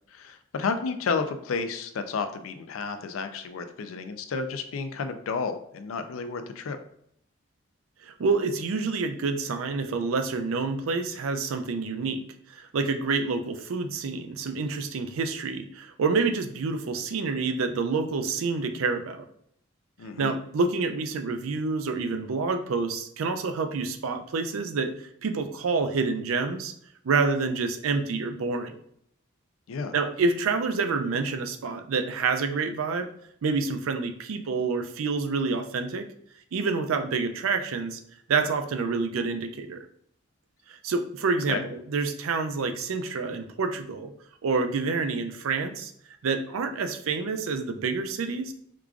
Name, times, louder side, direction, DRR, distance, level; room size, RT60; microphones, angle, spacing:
voice 1, 0.1-6.8 20.0-20.4 29.7-30.0 41.5-41.6, left 5 dB, 85° left, 9 dB, 0.4 m, -31 dB
voice 2, 8.0-12.2 12.5-19.2 20.2-26.7 27.0-28.7 29.9-33.1 33.4-36.1 36.5-38.0 38.3-39.8 40.7-44.1 44.4-45.9 46.2-48.5, right 4 dB, 85° right, 7 dB, 0.4 m, -28 dB
4.7 x 2.4 x 2.3 m, 0.69 s
head